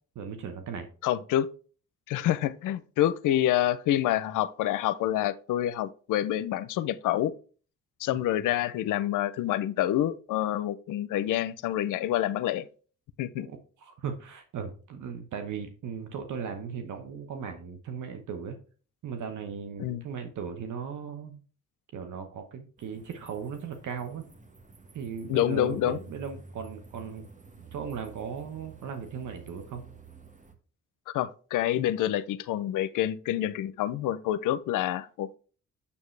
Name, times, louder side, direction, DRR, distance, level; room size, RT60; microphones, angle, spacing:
voice 1, 0.1-0.9 8.1-8.2 13.3-13.5 13.8-18.6 19.0-21.4 21.9-24.3 24.9-27.3 27.6-29.8, right 6 dB, 75° right, 1.1 m, -37 dB
voice 2, 1.0-1.5 2.1-7.3 8.0-12.7 13.2-13.5 19.8-20.0 25.3-26.0 31.1-35.4, left 12 dB, 90° left, 0.5 m, -27 dB
sound 1, 22.8-30.5, right 4 dB, 25° right, 1.4 m, -50 dB
7.1 x 7.0 x 3.2 m
cardioid pair, 65°, 30 cm